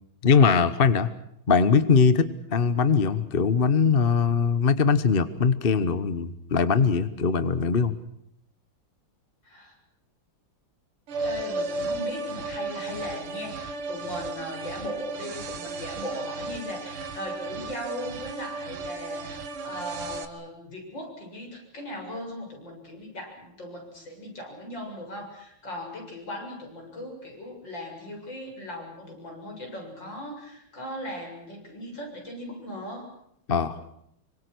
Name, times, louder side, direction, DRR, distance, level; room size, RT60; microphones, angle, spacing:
voice 1, 0.2-1.1 1.5-7.9 33.5-33.8, left 5 dB, 35° left, 13 dB, 1.0 m, -21 dB
voice 2, 9.4-9.7 11.2-33.1, equal, 55° left, 1 dB, 8.0 m, -38 dB
sound 1, 11.1-20.3, right 3 dB, 80° right, 2.6 m, -34 dB
27.0 x 25.0 x 6.2 m, 0.74 s
omnidirectional pair, 2.3 m